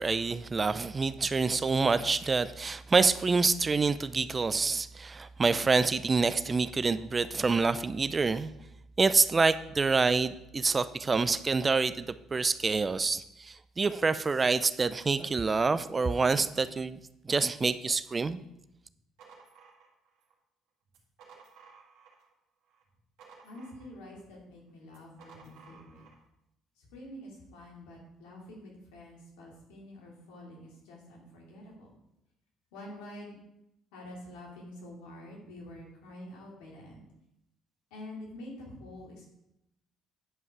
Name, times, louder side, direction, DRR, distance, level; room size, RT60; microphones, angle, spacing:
voice 1, 0.0-8.5 9.0-17.0 17.2-18.4, right 4 dB, 30° right, 14 dB, 0.5 m, -27 dB
sound 1, 18.9-20.3 20.9-22.3 22.7-24.2 24.9-26.2, right 5 dB, 75° right, 2.2 m, -56 dB
voice 2, 23.4-26.0 26.8-31.9 32.7-33.4 33.9-37.0 37.9-39.3, left 1 dB, 85° left, -2 dB, 2.6 m, -47 dB
9.9 x 5.5 x 4.7 m, 0.83 s
supercardioid pair, 65°, 0 cm